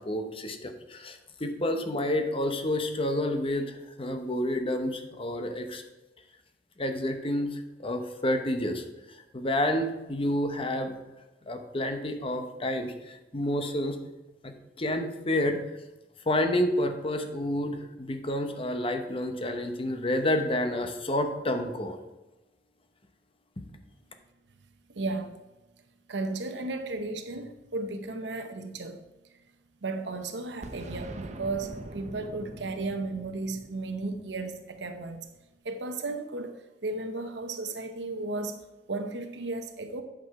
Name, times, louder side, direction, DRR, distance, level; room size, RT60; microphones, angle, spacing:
voice 1, 0.0-5.8 6.8-8.8 9.3-10.9 11.5-14.0 14.4-15.6 16.3-22.0, left 1 dB, 30° left, 6 dB, 0.9 m, -29 dB
voice 2, 24.9-25.4 26.1-29.0 29.8-35.2 35.6-38.6 38.9-40.0, right 2 dB, 85° right, 7 dB, 0.8 m, -34 dB
Boom, 30.6-35.3, right 1 dB, 40° right, 0.7 m, -43 dB
8.3 x 6.2 x 4.8 m, 1.1 s
head